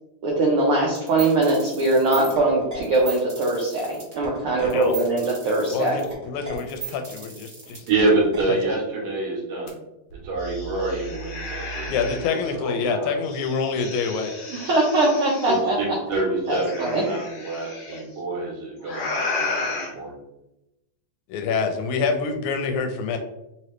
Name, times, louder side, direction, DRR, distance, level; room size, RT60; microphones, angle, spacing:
voice 1, 0.2-6.0 14.5-17.0, right 2 dB, 90° right, -3 dB, 1.2 m, -22 dB
sound 1, 0.9-8.4, right 6 dB, 40° right, 1.3 m, -36 dB
voice 2, 4.6-4.9 5.7-7.8 8.5-8.6 11.9-14.3 21.3-23.2, left 5 dB, 80° left, 5 dB, 1.9 m, -26 dB
voice 3, 7.9-9.7 10.2-11.9 12.3-13.1 15.5-20.1, right 2 dB, 60° right, -3 dB, 1.9 m, -26 dB
sound 2, 9.7-9.8 10.1-12.5 13.2-15.6 16.5-18.0 18.8-19.9, left 2 dB, 65° left, 1.4 m, -33 dB
4.5 x 3.0 x 3.1 m, 0.91 s
omnidirectional pair, 3.4 m